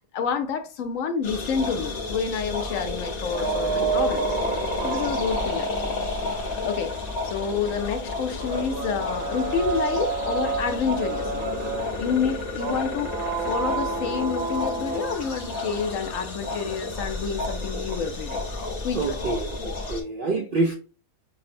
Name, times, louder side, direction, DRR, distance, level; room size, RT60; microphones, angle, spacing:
voice 1, 0.1-4.3 4.8-5.9 6.6-6.9 7.2-11.5 12.0-18.4 18.8-19.2, left 6 dB, 70° left, 1.0 m, -28 dB
sound 1, 1.2-20.0, left 2 dB, 40° left, 0.7 m, -31 dB
sound 2, 3.3-18.4, right 4 dB, 75° right, 1.7 m, -32 dB
voice 2, 19.0-20.7, right 3 dB, 60° right, 0.5 m, -27 dB
5.8 x 2.1 x 2.5 m
omnidirectional pair, 1.4 m